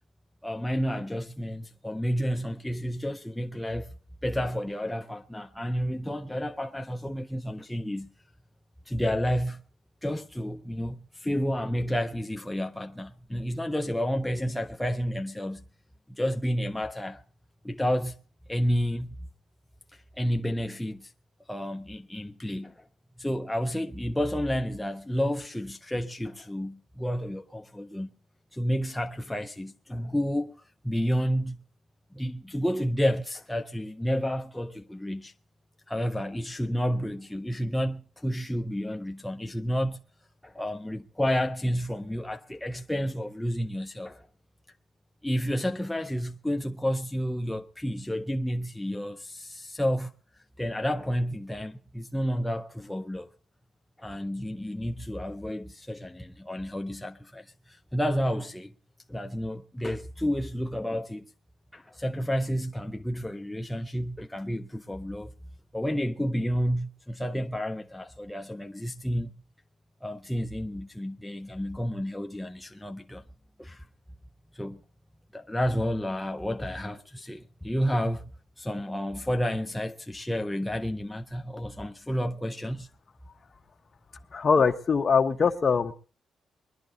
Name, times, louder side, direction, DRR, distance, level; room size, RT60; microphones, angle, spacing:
voice 1, 0.4-3.9 4.2-8.1 8.9-9.6 10.0-15.6 16.1-17.2 17.6-18.2 18.5-19.1 19.9-21.1 21.5-22.8 23.2-28.1 28.5-30.5 30.8-31.6 32.1-35.3 35.9-40.0 40.4-44.3 45.2-50.1 50.6-53.3 54.0-58.7 59.1-61.3 61.7-65.3 65.7-69.3 70.0-73.2 73.6-73.9 74.5-74.8 75.3-78.3 78.6-82.9, equal, 5° left, 0.6 m, -30 dB
voice 2, 84.3-85.9, left 5 dB, 35° left, 1.1 m, -22 dB
21.0 x 11.5 x 4.0 m
cardioid pair, 130°, 0 cm